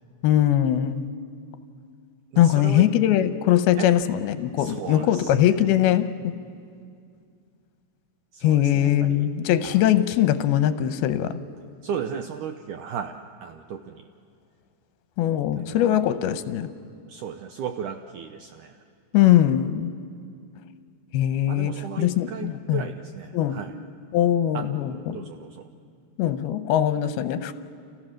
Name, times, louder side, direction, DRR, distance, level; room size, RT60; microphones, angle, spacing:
voice 1, 0.2-1.1 2.4-6.4 8.4-11.4 15.2-16.7 19.1-19.9 21.1-22.9 23.3-23.7 24.1-25.3 26.2-27.5, left 11 dB, 85° left, 11 dB, 2.8 m, -21 dB
voice 2, 2.3-2.9 3.8-3.9 4.6-5.6 8.3-9.3 9.6-9.8 11.8-14.1 15.5-16.2 17.1-18.8 19.2-19.4 21.5-23.8 24.5-24.7 25.1-25.6, right 7 dB, 75° right, 7 dB, 1.8 m, -36 dB
30.0 x 29.0 x 6.4 m, 2.3 s
omnidirectional pair, 4.5 m